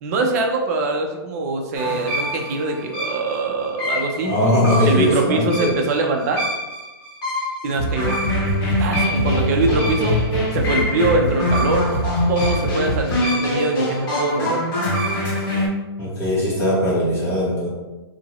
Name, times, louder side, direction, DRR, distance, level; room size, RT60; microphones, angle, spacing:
voice 1, 0.0-4.3 4.8-6.5 7.6-8.2 8.8-10.2 10.5-11.9 12.3-14.6, right 2 dB, 35° right, 3 dB, 0.5 m, -23 dB
sound 1, 1.8-15.7, left 1 dB, 50° left, 1.3 m, -24 dB
voice 2, 4.2-5.7 16.0-17.7, left 1 dB, 20° left, -9 dB, 1.2 m, -20 dB
sound 2, 7.8-13.3, right 2 dB, 15° right, 1.3 m, -26 dB
2.8 x 2.5 x 3.0 m, 1.1 s
hypercardioid pair, 150°, 14 cm